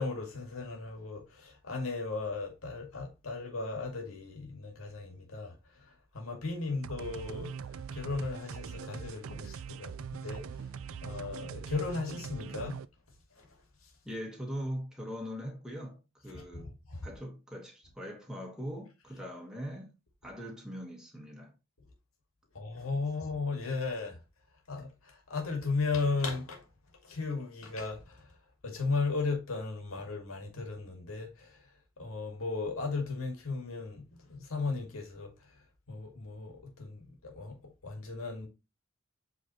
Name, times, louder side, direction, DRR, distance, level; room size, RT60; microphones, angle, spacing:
voice 1, 0.0-10.7 11.0-12.8 13.3-13.5 13.8-13.9 16.3-17.0 22.5-24.2 24.7-26.7 27.0-28.4 28.6-37.6 37.8-38.5, left 3 dB, 85° left, 2.1 m, -36 dB
sound 1, 6.8-12.9, right 7 dB, 75° right, 0.4 m, -42 dB
voice 2, 14.0-16.7 17.0-21.5, equal, 5° right, 1.5 m, -41 dB
8.4 x 3.9 x 3.1 m
head